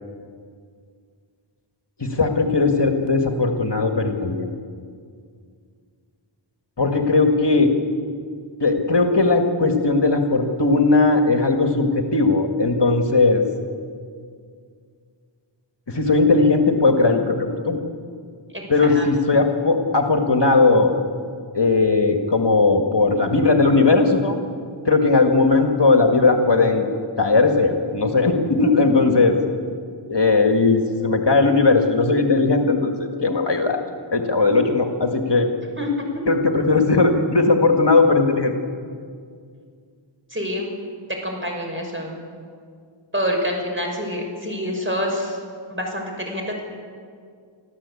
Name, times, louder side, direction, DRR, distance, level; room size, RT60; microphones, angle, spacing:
voice 1, 2.0-4.5 6.8-7.7 8.6-13.4 15.9-17.8 18.7-20.9 21.5-24.4 24.9-26.9 27.2-29.4 30.1-33.8 34.1-35.5 36.3-38.5, left 3 dB, 55° left, 4 dB, 1.9 m, -18 dB
voice 2, 18.5-19.1 35.8-36.1 40.3-40.7 41.1-42.2 43.1-45.4 45.7-46.6, equal, 25° right, 1 dB, 6.0 m, -27 dB
25.5 x 14.5 x 8.5 m, 2.2 s
wide cardioid pair, 55°, 49 cm